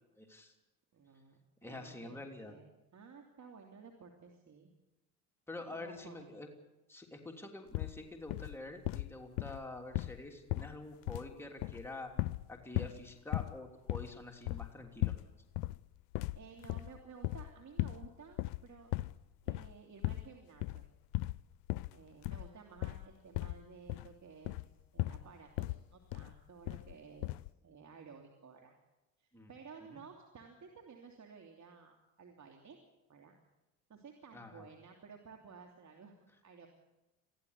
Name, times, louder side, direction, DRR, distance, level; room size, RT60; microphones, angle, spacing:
voice 1, 0.2-0.5 1.6-2.5 5.5-6.5 6.9-12.1 12.5-15.1 29.3-29.5 29.9-30.0 34.3-34.7, left 2 dB, 5° left, 2 dB, 3.2 m, -47 dB
voice 2, 0.9-2.2 2.5-4.7 5.7-6.3 16.4-18.9 19.4-20.8 21.9-24.6 24.9-28.7 29.2-32.8 33.1-33.4 33.9-36.1 36.4-36.7, right 5 dB, 40° right, 2 dB, 2.9 m, -55 dB
sound 1, 7.7-8.0 8.3-8.6 8.8-10.2 10.5-11.3 11.6-12.5 12.7-13.0 13.3-13.6 13.9-15.3 15.5-15.8 16.1-17.5 17.8-18.1 18.3-19.2 19.5-19.8 20.0-20.3 20.6-20.9 21.1-21.4 21.7-21.9 22.2-22.5 22.8-23.1 23.3-24.1 24.4-24.7 25.0-25.3 25.6-25.8 26.1-26.4 26.7-26.9 27.2-27.5, left 19 dB, 75° left, 0.6 m, -37 dB
23.0 x 15.5 x 8.3 m, 1.0 s
hypercardioid pair, 70°, 42 cm